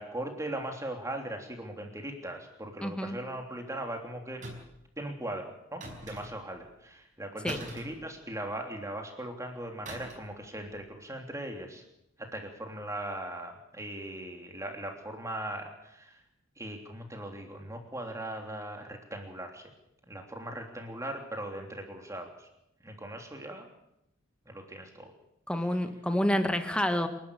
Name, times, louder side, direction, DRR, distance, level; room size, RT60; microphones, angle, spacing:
voice 1, 0.0-4.5 5.0-11.8 12.2-16.2 16.6-19.7 20.1-22.5 22.8-23.7 24.4-25.1, right 1 dB, 15° right, 3 dB, 3.3 m, -39 dB
voice 2, 2.8-3.1 7.4-7.6 25.5-27.1, left 1 dB, 5° left, 7 dB, 1.6 m, -28 dB
sound 1, 4.4-4.9 5.8-6.6 7.5-8.6 9.9-10.4 10.6-10.9, right 1 dB, 40° right, 5.2 m, -44 dB
28.0 x 12.0 x 8.6 m, 0.84 s
head